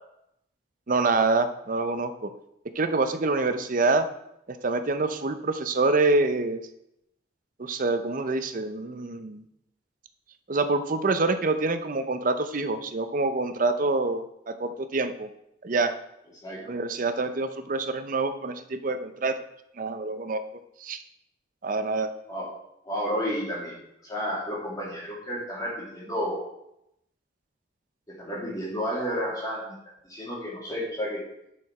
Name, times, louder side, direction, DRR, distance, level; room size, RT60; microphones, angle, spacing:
voice 1, 0.9-2.3 2.7-4.1 4.5-6.6 7.6-9.4 10.5-15.3 15.6-16.0 16.7-19.4 19.8-21.0 21.6-22.1, right 3 dB, 45° right, 9 dB, 0.6 m, -26 dB
voice 2, 22.8-26.4 28.1-29.7 30.0-31.2, equal, 20° left, -5 dB, 2.1 m, -31 dB
9.9 x 4.8 x 4.3 m, 0.81 s
head